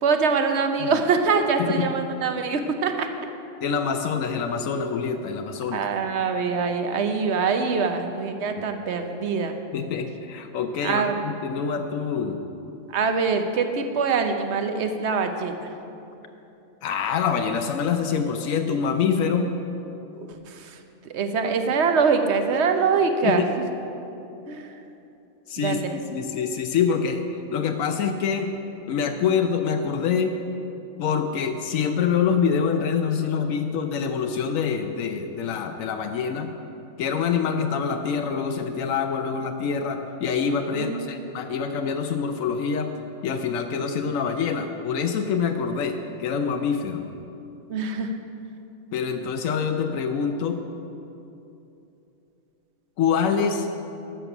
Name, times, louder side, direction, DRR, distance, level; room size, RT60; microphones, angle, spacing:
voice 1, 0.0-3.3 5.7-9.5 10.8-11.2 12.9-15.6 20.2-23.4 24.5-24.8 25.6-26.0 40.7-41.3 47.7-48.2, right 5 dB, 60° right, 6 dB, 1.0 m, -24 dB
voice 2, 3.6-5.8 9.7-12.4 16.8-19.5 23.2-23.4 25.5-28.5 28.9-30.4 31.0-36.5 37.0-42.9 43.2-47.0 48.9-50.6 53.0-53.7, left 6 dB, 90° left, 5 dB, 1.0 m, -25 dB
12.0 x 6.8 x 6.0 m, 2.9 s
omnidirectional pair, 1.4 m